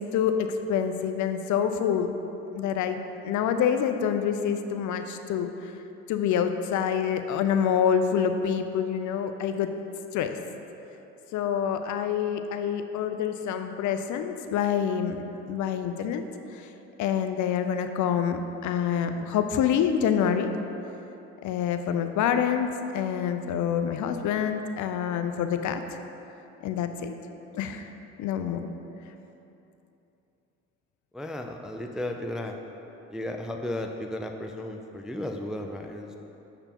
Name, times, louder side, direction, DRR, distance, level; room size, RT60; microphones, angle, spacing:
voice 1, 0.0-2.2 2.5-5.7 6.1-9.7 10.1-10.4 11.3-16.2 16.5-16.7 17.0-20.6 21.4-25.8 26.6-27.2 27.5-27.8 28.2-28.7, left 8 dB, 55° left, 8 dB, 0.5 m, -27 dB
voice 2, 31.1-32.6 33.1-36.2, left 1 dB, ahead, 3 dB, 0.3 m, -34 dB
6.8 x 6.7 x 2.9 m, 2.9 s
hypercardioid pair, 70°, 36 cm